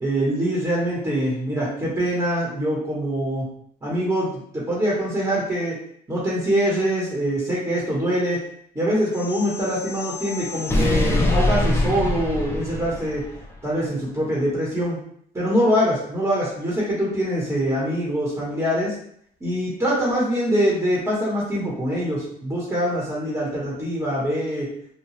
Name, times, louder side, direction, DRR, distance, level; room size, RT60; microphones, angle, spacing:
voice 1, 0.0-3.5 3.8-4.3 4.5-5.8 6.1-8.4 8.7-13.2 13.6-15.0 15.3-18.9 19.4-24.7, equal, 15° right, -6 dB, 1.1 m, -24 dB
sound 1, 9.1-13.4, left 1 dB, 15° left, 0.5 m, -24 dB
2.8 x 2.2 x 3.1 m, 0.66 s
cardioid pair, 110°, 17 cm